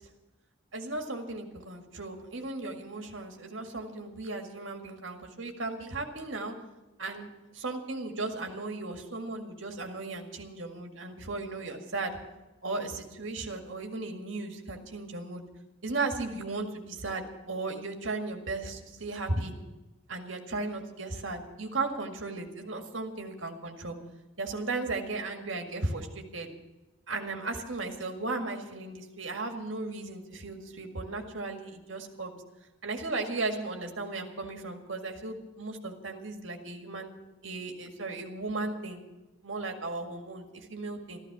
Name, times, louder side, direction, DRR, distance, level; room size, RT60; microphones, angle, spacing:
voice 1, 0.7-6.5 7.0-12.2 12.6-15.4 15.8-19.5 20.1-24.0 24.4-26.5 27.1-32.4 32.8-37.1 37.4-39.0 39.4-41.2, right 3 dB, 70° right, 4 dB, 2.0 m, -36 dB
13.5 x 13.5 x 6.1 m, 1.1 s
head